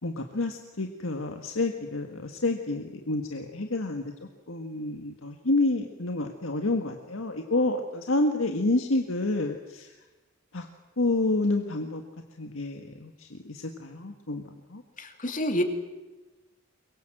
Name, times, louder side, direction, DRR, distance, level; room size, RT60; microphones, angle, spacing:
voice 1, 0.0-4.1 4.5-9.9 10.5-10.7 11.0-12.0 12.4-14.4 14.7-14.8, left 2 dB, 85° left, 4 dB, 1.7 m, -29 dB
voice 2, 15.0-15.6, equal, 40° left, 5 dB, 2.7 m, -28 dB
24.0 x 22.0 x 7.8 m, 1.1 s
head